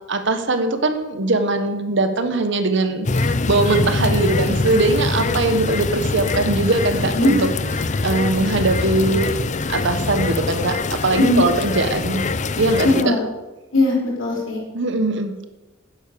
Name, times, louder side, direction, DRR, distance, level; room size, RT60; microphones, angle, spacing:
voice 1, 0.1-7.5 7.8-9.3 9.7-12.2 12.6-12.9 14.7-15.5, right 2 dB, 65° right, 8 dB, 1.4 m, -21 dB
sound 1, 3.0-13.0, left 3 dB, 35° left, 0.6 m, -23 dB
voice 2, 12.8-13.2 13.7-14.6, left 2 dB, 70° left, -2 dB, 5.0 m, -18 dB
12.0 x 9.7 x 6.9 m, 1.1 s
head